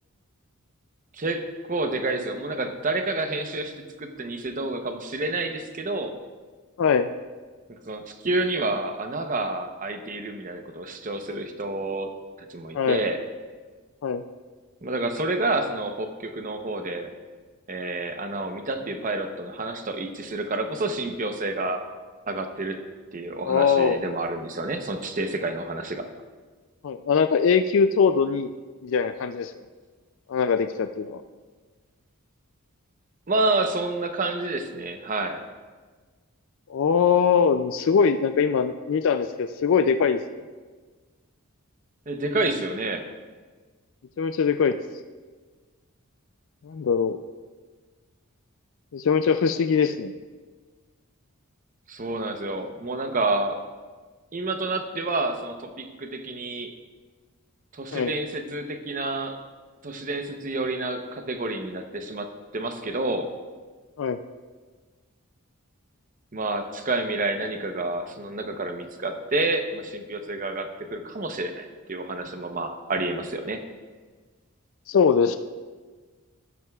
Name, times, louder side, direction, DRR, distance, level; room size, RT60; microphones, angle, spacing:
voice 1, 1.1-6.1 7.7-12.1 12.5-13.2 14.8-17.1 17.7-21.8 22.3-22.8 23.1-26.1 33.3-35.4 42.1-43.1 51.9-53.6 54.3-56.7 57.7-59.4 59.8-63.3 66.3-73.6, right 2 dB, 35° right, 6 dB, 0.8 m, -29 dB
voice 2, 6.8-7.1 12.7-13.0 14.0-14.2 23.5-24.0 26.8-28.5 28.8-29.5 30.3-31.2 36.7-40.2 44.2-44.8 46.6-47.2 48.9-50.1 57.9-58.1 64.0-64.2 74.9-75.4, left 6 dB, 60° left, 9 dB, 0.3 m, -22 dB
13.0 x 11.0 x 2.4 m, 1.4 s
head